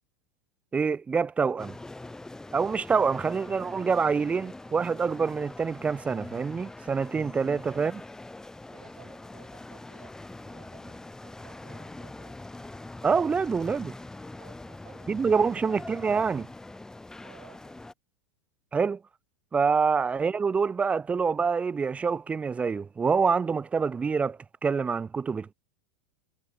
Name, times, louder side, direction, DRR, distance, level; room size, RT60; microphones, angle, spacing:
voice 1, 0.7-1.7 2.5-8.0 13.0-13.9 15.1-16.5 18.7-19.0 19.5-25.5, right 5 dB, 15° right, 0.5 m, -26 dB
sound 1, 1.6-17.9, left 2 dB, 5° left, 2.0 m, -43 dB
voice 2, 8.7-12.6 14.4-15.7 17.2-17.9, right 26 dB, 50° right, 7.1 m, -57 dB
hypercardioid pair, 120°, 9 cm